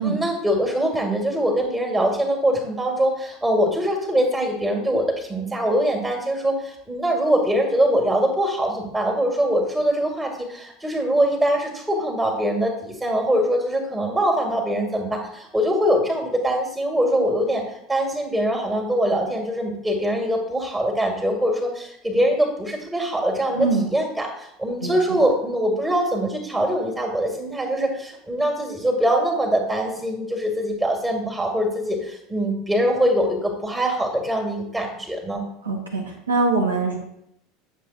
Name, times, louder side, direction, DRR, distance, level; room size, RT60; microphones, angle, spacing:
voice 1, 0.0-35.4, equal, 10° right, 1 dB, 2.0 m, -23 dB
voice 2, 23.5-23.9 24.8-25.2 35.6-37.0, right 3 dB, 80° right, -1 dB, 1.7 m, -23 dB
10.0 x 7.3 x 2.4 m, 0.75 s
figure-of-eight pair, 75°, 0 cm